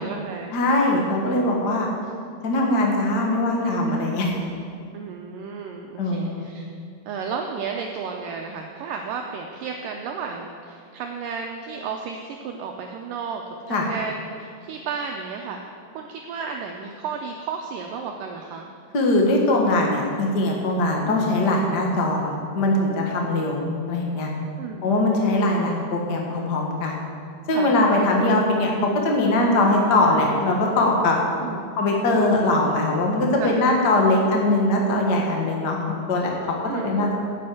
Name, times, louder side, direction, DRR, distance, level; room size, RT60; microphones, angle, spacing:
voice 1, 0.0-0.6 3.9-4.2 4.9-6.7 7.1-18.7 21.0-21.3 23.3-23.5 24.6-24.9 27.5-27.7 31.4-31.8 33.4-33.5 36.7-37.0, right 5 dB, 80° right, 2 dB, 2.0 m, -33 dB
voice 2, 0.5-1.9 2.4-4.3 6.0-6.4 13.7-13.9 18.9-23.6 23.9-24.3 24.8-27.0 27.5-31.2 31.8-36.3 36.7-37.2, left 2 dB, 80° left, 0 dB, 0.9 m, -21 dB
9.9 x 7.6 x 7.8 m, 2.3 s
omnidirectional pair, 4.6 m